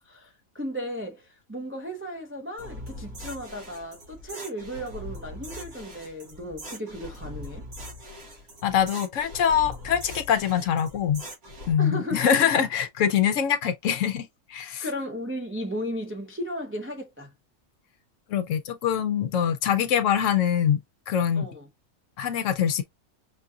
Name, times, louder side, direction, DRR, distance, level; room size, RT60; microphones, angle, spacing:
voice 1, 0.1-7.7 11.8-12.3 14.8-17.3 21.3-21.7, equal, 20° right, 0.3 m, -35 dB
sound 1, 2.6-11.7, left 1 dB, 80° right, 2.5 m, -41 dB
voice 2, 8.6-11.2 11.7-14.8 18.3-20.8 21.1-21.5 22.2-22.8, left 8 dB, 70° left, 0.9 m, -24 dB
5.2 x 2.4 x 2.7 m
omnidirectional pair, 1.5 m